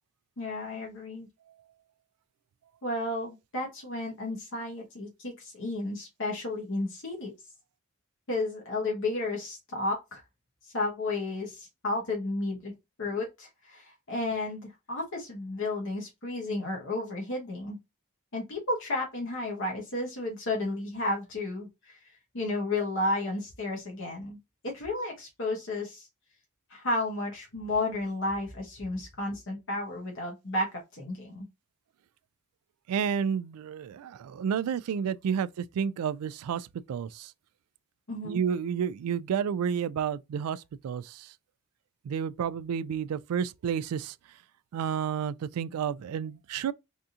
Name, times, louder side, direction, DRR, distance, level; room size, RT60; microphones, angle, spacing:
voice 1, 0.4-1.3 2.8-7.3 8.3-10.2 10.6-12.7 13.0-17.8 18.3-22.0 22.3-24.4 24.6-26.1 26.7-31.5 38.1-38.4, left 2 dB, 60° left, 1.1 m, -32 dB
voice 2, 32.9-37.3 38.2-41.3 42.0-44.2 44.7-46.7, right 7 dB, 80° right, 0.3 m, -31 dB
3.5 x 2.8 x 2.4 m
head